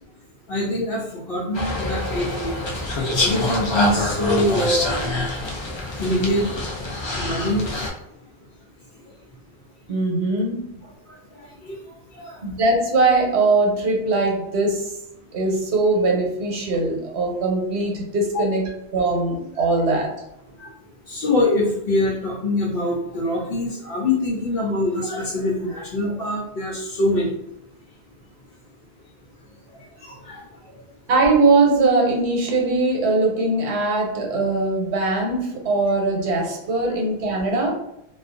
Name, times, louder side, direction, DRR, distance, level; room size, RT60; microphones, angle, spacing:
voice 1, 0.5-5.3 6.0-6.5 7.1-7.7 11.1-11.8 12.1-12.4 20.6-20.7 21.1-27.4 30.0-30.4 36.9-37.0, left 1 dB, 65° left, -4 dB, 0.7 m, -24 dB
sound 1, 1.5-7.9, left 2 dB, 45° left, 0.3 m, -25 dB
voice 2, 9.9-10.7 12.4-14.9 15.3-20.1 31.1-37.7, right 3 dB, 90° right, 0 dB, 1.0 m, -21 dB
2.3 x 2.2 x 2.4 m, 0.82 s
omnidirectional pair, 1.1 m